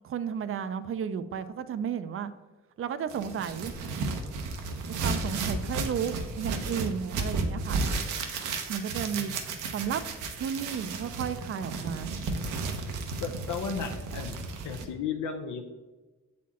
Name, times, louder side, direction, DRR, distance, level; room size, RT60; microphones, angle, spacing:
voice 1, 0.0-2.3 2.8-3.8 4.9-7.8 8.7-9.3 9.7-10.0 10.4-12.1, right 7 dB, 45° right, 13 dB, 0.5 m, -33 dB
sound 1, 3.1-14.9, right 3 dB, 85° right, 0.9 m, -33 dB
voice 2, 13.2-14.3 14.6-15.6, left 6 dB, 75° left, 3 dB, 0.7 m, -34 dB
7.2 x 4.2 x 4.2 m, 1.2 s
cardioid pair, 90°, 30 cm